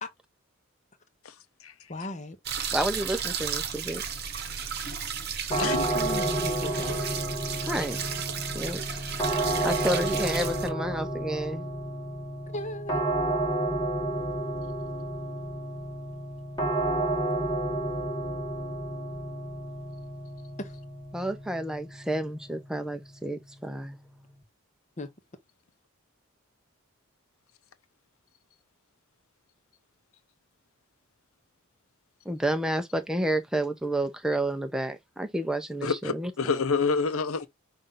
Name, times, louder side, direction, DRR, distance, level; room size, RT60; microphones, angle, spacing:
voice 1, 1.9-2.4 5.5-6.9 12.5-13.1 20.6-20.8 25.0-25.1, left 1 dB, 35° left, 0.9 m, -36 dB
sound 1, 2.5-10.7, right 6 dB, 50° right, 0.9 m, -34 dB
voice 2, 2.7-4.0 7.7-8.0 8.5-9.0 9.6-11.7 21.1-24.0 32.3-36.3, right 1 dB, 5° right, 0.5 m, -30 dB
sound 2, 5.5-24.4, right 1 dB, 20° left, 1.2 m, -31 dB
voice 3, 35.8-37.5, left 5 dB, 85° left, 0.7 m, -27 dB
5.6 x 2.6 x 3.7 m
head